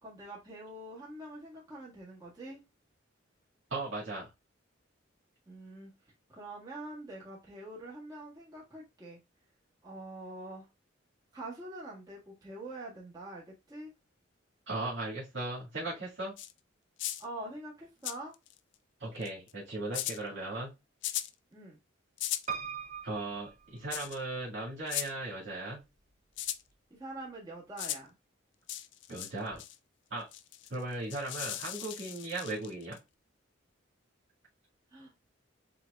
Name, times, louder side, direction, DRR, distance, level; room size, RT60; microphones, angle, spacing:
voice 1, 0.0-2.6 5.5-5.9 6.3-9.2 9.8-10.7 11.3-13.9 17.2-18.3 21.5-21.8 26.9-28.1 34.9-35.1, right 1 dB, 20° right, 1.6 m, -45 dB
voice 2, 3.7-4.3 14.7-16.3 19.0-20.7 23.0-25.8 29.1-29.6 30.1-30.3 30.7-33.0, right 2 dB, 70° right, 2.0 m, -37 dB
sound 1, 16.4-16.5 17.0-17.2 18.0-18.6 19.2-19.5 19.9-20.2 21.0-21.3 22.2-22.5 23.9-24.2 24.9-25.1 26.4-26.6 27.8-28.0 28.7-29.3 29.6-29.8 30.3-33.0, left 13 dB, 65° left, 0.4 m, -37 dB
Piano, 22.5-24.5 25.1-25.8 26.1-26.2 26.4-26.5, right 7 dB, 35° right, 0.4 m, -41 dB
7.6 x 2.9 x 2.3 m
head